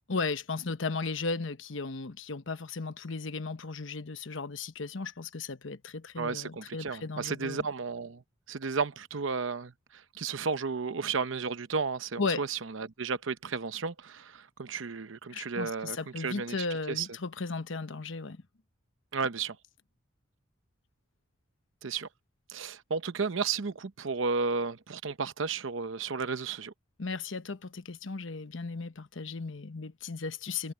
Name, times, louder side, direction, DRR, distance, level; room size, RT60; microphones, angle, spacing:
voice 1, 0.1-7.7 12.2-12.4 15.3-18.4 27.0-30.7, left 4 dB, 75° left, 1.0 m, -35 dB
voice 2, 6.2-8.2 8.5-17.1 19.1-19.6 21.8-22.1 22.5-26.7, right 5 dB, 80° right, 0.8 m, -33 dB
head